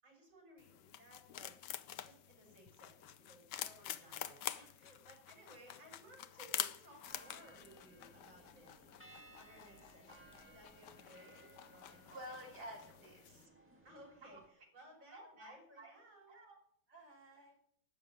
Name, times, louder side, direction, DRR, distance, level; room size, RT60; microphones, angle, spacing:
voice 1, 0.0-1.6 2.0-8.8 9.4-12.9 13.8-16.4, right 1 dB, 85° right, 0 dB, 6.1 m, -61 dB
sound 1, 0.6-13.5, left 11 dB, 70° left, 1.2 m, -48 dB
sound 2, 7.0-14.5, right 2 dB, 5° right, 2.1 m, -62 dB
voice 2, 12.1-13.5 14.2-14.4 15.1-15.9 16.2-16.6 16.9-17.6, equal, 55° right, -1 dB, 3.9 m, -52 dB
12.5 x 7.0 x 9.4 m, 0.66 s
omnidirectional pair, 2.1 m